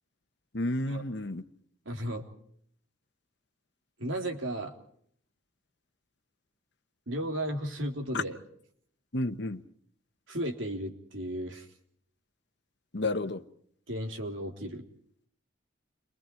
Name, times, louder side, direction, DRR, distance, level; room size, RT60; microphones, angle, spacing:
voice 1, 0.5-1.4 8.1-8.2 9.1-9.6 12.9-13.4, left 2 dB, 55° left, 9 dB, 1.2 m, -31 dB
voice 2, 1.9-2.3 4.0-4.7 7.1-8.4 10.3-11.7 13.9-14.8, right 1 dB, 70° right, 2 dB, 3.5 m, -34 dB
30.0 x 24.0 x 4.6 m, 0.64 s
head